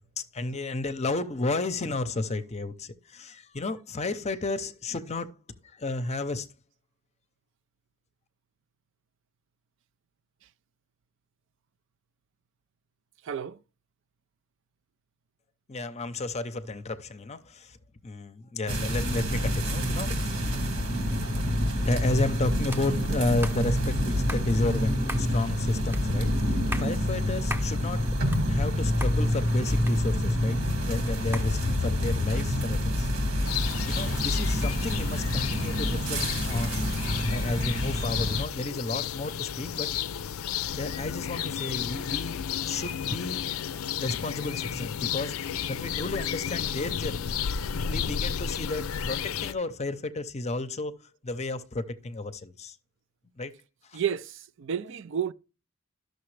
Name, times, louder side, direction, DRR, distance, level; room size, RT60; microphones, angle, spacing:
voice 1, 0.2-5.4 5.8-6.5 15.7-17.8 18.0-20.5 21.8-28.0 28.5-30.6 30.9-33.1 33.9-36.2 36.5-36.9 37.2-39.9 40.8-43.5 44.0-47.4 47.9-50.9 51.2-52.8 53.4-53.5 53.9-54.0, left 2 dB, 30° left, 0.7 m, -32 dB
voice 2, 13.2-13.6 53.9-55.3, right 8 dB, 60° right, 0.4 m, -31 dB
sound 1, 18.7-38.4, equal, 80° right, 2.1 m, -27 dB
sound 2, 22.7-22.9 23.4-23.6 24.3-24.5 25.1-25.3 25.9-26.1 26.5-26.9 27.5-27.7 28.1-28.7 29.0-29.2 29.9-30.4 31.3-31.5, equal, 10° right, 0.8 m, -37 dB
sound 3, 33.4-49.5, left 8 dB, 75° left, 0.4 m, -33 dB
12.0 x 6.6 x 3.2 m
head